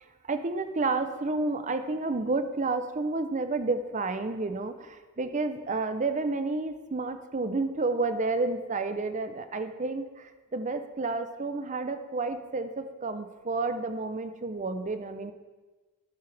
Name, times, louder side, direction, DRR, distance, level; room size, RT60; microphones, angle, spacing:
voice 1, 0.3-15.3, right 3 dB, 35° right, 9 dB, 0.6 m, -30 dB
11.5 x 11.0 x 3.4 m, 1.3 s
head